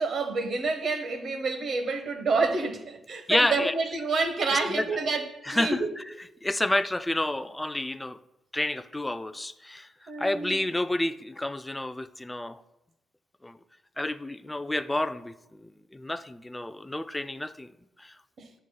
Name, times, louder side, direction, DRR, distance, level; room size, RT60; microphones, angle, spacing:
voice 1, 0.0-5.9 10.1-10.6 18.4-18.5, right 3 dB, 50° right, 0.9 m, -28 dB
voice 2, 3.3-3.7 4.5-4.9 5.4-6.0 6.4-8.2 8.5-12.6 13.4-13.6 14.0-17.7 18.0-18.2, left 1 dB, 10° left, 0.3 m, -30 dB
9.7 x 6.2 x 2.3 m
cardioid pair, 110°, 0 cm